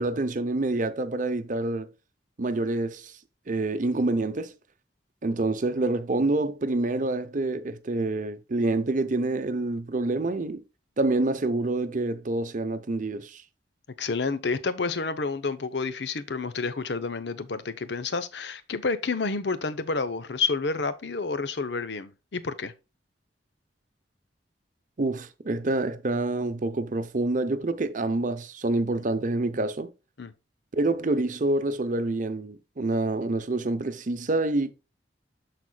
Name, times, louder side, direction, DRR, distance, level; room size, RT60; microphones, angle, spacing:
voice 1, 0.0-1.9 2.4-3.1 3.5-4.5 5.2-10.6 11.0-13.4 25.0-29.9 30.7-34.7, right 2 dB, 45° right, 0.7 m, -27 dB
voice 2, 14.0-22.7 30.2-30.3, left 4 dB, 65° left, 0.7 m, -29 dB
12.5 x 4.3 x 2.3 m
head